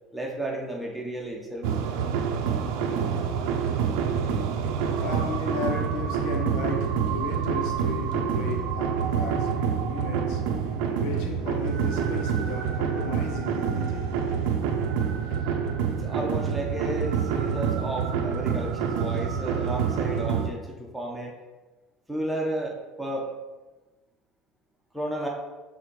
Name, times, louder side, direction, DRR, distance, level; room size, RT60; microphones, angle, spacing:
voice 1, 0.1-1.7 15.9-21.3 22.1-23.3 24.9-25.3, right 1 dB, ahead, 1.1 m, -33 dB
sound 1, 1.6-20.5, right 7 dB, 80° right, 0.6 m, -27 dB
voice 2, 4.4-14.6, left 4 dB, 70° left, 0.9 m, -36 dB
4.8 x 3.7 x 5.7 m
cardioid pair, 140°, 0 cm